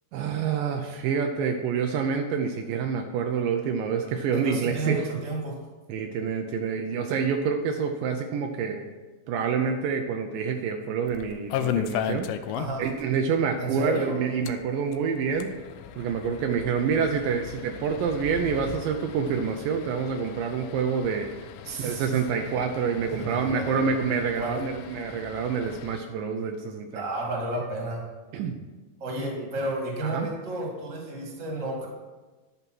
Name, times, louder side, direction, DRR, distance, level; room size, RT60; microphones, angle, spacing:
voice 1, 0.1-5.0 5.9-8.9 9.3-12.3 12.8-15.5 16.0-21.3 21.8-27.0 28.3-28.6 29.4-29.5 30.0-30.3, right 6 dB, 80° right, 4 dB, 2.3 m, -27 dB
voice 2, 4.3-5.7 12.5-12.8 13.6-14.2 21.6-22.2 23.1-23.8 24.4-24.6 26.9-28.1 29.0-31.9, right 2 dB, 25° right, -1 dB, 1.9 m, -32 dB
sound 1, 11.1-13.0 13.3-13.4 13.7-13.8 14.3-26.0, left 10 dB, 80° left, 2.2 m, -37 dB
11.0 x 5.7 x 6.1 m, 1.3 s
omnidirectional pair, 4.2 m